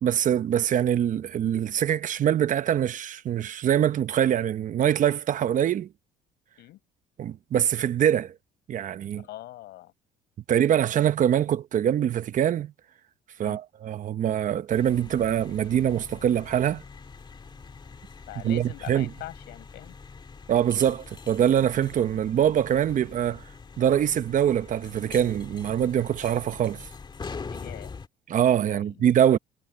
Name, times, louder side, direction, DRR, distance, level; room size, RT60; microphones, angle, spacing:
voice 1, 0.0-5.9 7.2-8.3 8.7-9.2 10.5-12.7 13.4-16.8 18.4-19.1 20.5-23.4 23.8-26.9 28.3-29.4, right 10 dB, 50° right, 0.9 m, -24 dB
voice 2, 9.2-9.9 13.4-13.6 18.3-19.9 27.5-27.9 28.7-29.0, left 15 dB, 80° left, 5.6 m, -42 dB
sound 1, 14.7-28.1, left 4 dB, 25° left, 2.3 m, -43 dB
cardioid pair, 110°, 17 cm